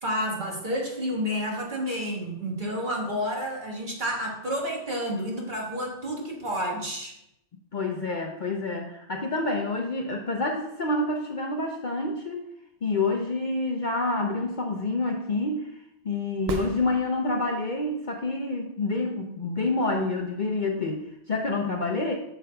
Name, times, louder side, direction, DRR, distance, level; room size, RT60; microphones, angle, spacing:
voice 1, 0.0-7.1, equal, 40° right, -2 dB, 1.6 m, -30 dB
voice 2, 7.7-12.4 12.8-15.7 16.0-22.1, left 2 dB, 50° left, 1 dB, 0.7 m, -28 dB
sound 1, 16.4-17.6 21.5-21.6, right 4 dB, 60° right, 0.9 m, -36 dB
8.5 x 6.9 x 2.3 m, 0.80 s
omnidirectional pair, 1.3 m